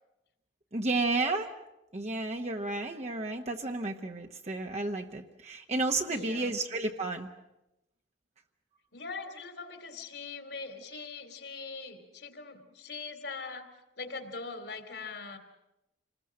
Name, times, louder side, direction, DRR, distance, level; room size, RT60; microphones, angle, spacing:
voice 1, 0.7-1.5 1.9-7.3, right 2 dB, 40° right, 3 dB, 1.1 m, -32 dB
voice 2, 6.1-6.6 8.9-13.7 14.0-15.4, left 4 dB, 65° left, 7 dB, 3.1 m, -41 dB
28.0 x 20.5 x 7.7 m, 0.92 s
head